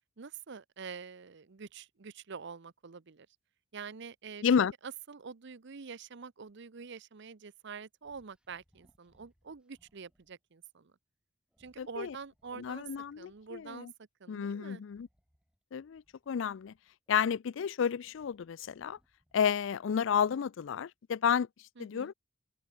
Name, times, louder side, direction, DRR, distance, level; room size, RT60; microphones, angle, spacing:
voice 1, 0.2-3.3 3.7-4.4 4.8-10.9 11.6-12.9 13.2-13.9 14.2-14.8 21.8-22.1, right 5 dB, 65° right, 0.8 m, -46 dB
sound 1, 8.0-10.3 11.5-13.8 14.8-17.1 17.7-20.1, equal, 5° right, 7.9 m, -72 dB
voice 2, 11.8-12.1 12.6-13.9 14.3-15.1 15.7-16.7 17.1-19.0 19.3-21.5 21.8-22.1, left 7 dB, 70° left, 0.4 m, -31 dB
open air
head